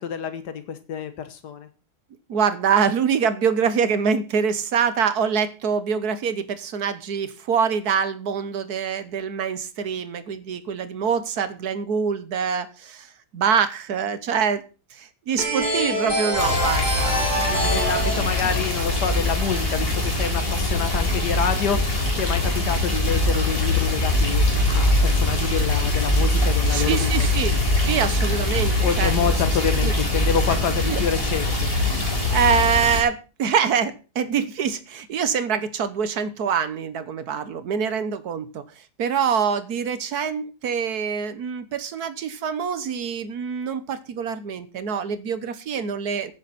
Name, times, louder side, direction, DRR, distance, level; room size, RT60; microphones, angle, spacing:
voice 1, 0.0-1.7 17.5-24.4 24.7-27.6 28.8-31.7, left 7 dB, 85° left, 10 dB, 1.8 m, -27 dB
voice 2, 2.3-14.6 14.9-18.5 26.7-27.5 27.8-29.1 29.8-29.9 30.8-31.0 32.3-46.3, right 7 dB, 70° right, 13 dB, 1.6 m, -25 dB
sound 1, 15.4-20.0, equal, 25° right, 5.8 m, -26 dB
sound 2, 16.4-33.0, left 2 dB, 35° left, 4.2 m, -22 dB
16.0 x 9.1 x 4.2 m, 0.32 s
omnidirectional pair, 1.7 m